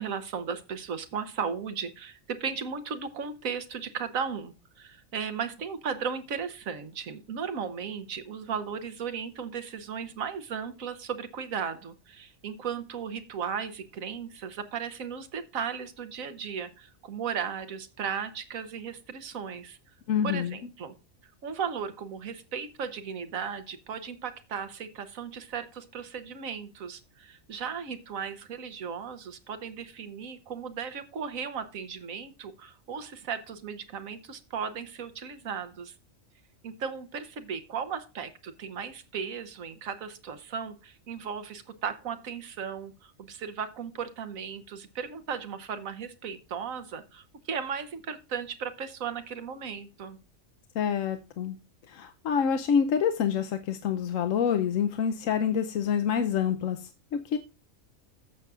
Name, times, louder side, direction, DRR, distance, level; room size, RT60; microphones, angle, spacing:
voice 1, 0.0-19.8 20.2-20.9 21.2-35.9 36.6-50.2, right 6 dB, 85° right, 11 dB, 1.4 m, -36 dB
voice 2, 20.1-20.5 50.8-51.5 51.9-57.4, left 7 dB, 75° left, 8 dB, 1.1 m, -27 dB
14.5 x 6.8 x 2.4 m, 0.31 s
omnidirectional pair, 1.4 m